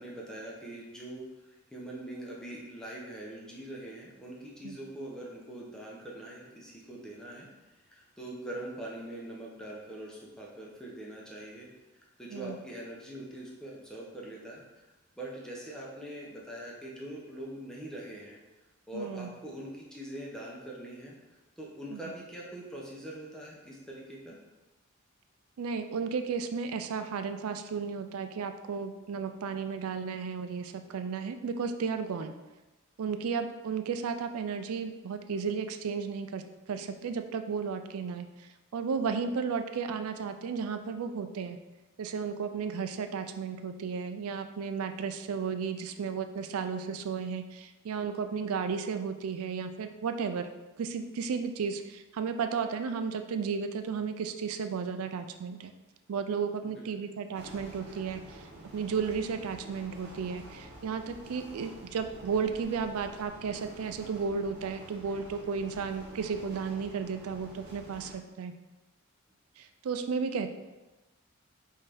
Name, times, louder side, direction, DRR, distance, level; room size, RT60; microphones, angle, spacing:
voice 1, 0.0-7.5 7.9-11.7 12.2-14.6 15.2-18.4 18.9-21.2 21.6-24.4 56.6-56.9, right 1 dB, 5° left, -4 dB, 0.7 m, -43 dB
voice 2, 18.9-19.3 21.9-22.0 25.6-32.3 33.0-36.4 36.7-41.6 42.0-50.5 50.8-55.7 56.1-58.5 58.7-68.5 69.6-70.5, right 5 dB, 85° right, 8 dB, 0.4 m, -34 dB
sound 1, 57.3-68.1, right 1 dB, 50° right, 1.0 m, -49 dB
5.5 x 2.7 x 3.4 m, 1.1 s
head